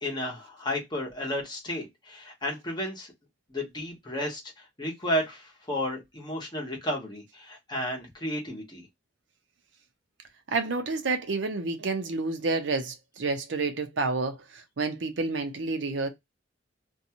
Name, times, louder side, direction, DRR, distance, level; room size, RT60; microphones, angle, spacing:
voice 1, 0.0-3.1 3.5-8.9, equal, 25° left, 1.0 m, -33 dB
voice 2, 10.5-16.1, right 3 dB, 70° right, 0.6 m, -29 dB
2.6 x 2.2 x 2.8 m
head